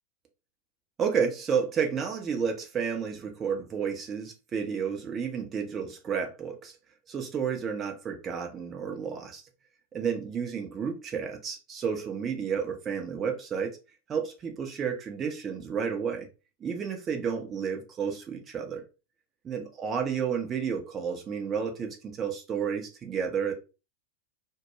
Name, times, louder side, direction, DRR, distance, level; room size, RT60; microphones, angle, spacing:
voice 1, 1.0-6.7 7.1-9.4 9.9-13.8 14.1-16.3 16.6-18.8 19.4-23.5, right 6 dB, 25° right, 0.6 m, -31 dB
2.1 x 2.0 x 3.0 m
figure-of-eight pair, 90°, 0 cm